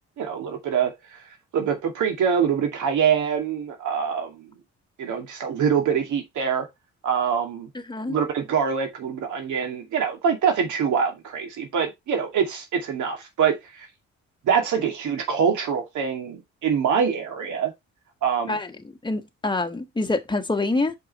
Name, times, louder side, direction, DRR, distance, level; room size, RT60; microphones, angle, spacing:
voice 1, 0.2-0.9 1.5-4.5 5.0-6.7 7.0-7.7 8.1-13.9 14.4-17.7 18.2-18.6, right 7 dB, 75° right, 2.3 m, -24 dB
voice 2, 19.0-20.9, left 2 dB, 15° left, 1.4 m, -26 dB
5.7 x 5.3 x 4.1 m
cardioid pair, 90°, 30 cm